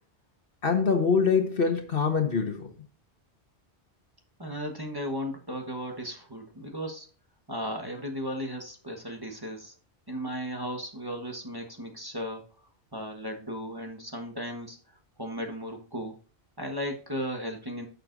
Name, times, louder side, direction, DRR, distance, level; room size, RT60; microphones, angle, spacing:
voice 1, 0.6-2.7, left 5 dB, 55° left, 1.5 m, -24 dB
voice 2, 4.4-7.1 7.5-9.7 10.1-12.4 12.9-14.8 15.2-16.1 16.6-17.9, equal, 20° right, 1.3 m, -35 dB
11.0 x 6.8 x 2.6 m
omnidirectional pair, 1.1 m